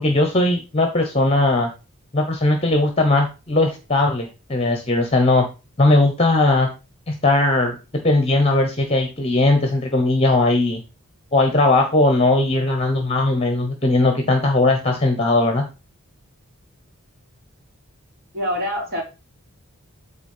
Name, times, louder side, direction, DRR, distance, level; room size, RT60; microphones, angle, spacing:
voice 1, 0.0-1.7 2.1-5.5 5.8-6.7 7.1-7.8 8.0-10.8 11.3-15.6, left 2 dB, 25° left, 4 dB, 1.0 m, -18 dB
voice 2, 18.3-19.0, equal, 45° right, -1 dB, 3.6 m, -25 dB
8.2 x 4.2 x 5.5 m, 0.29 s
head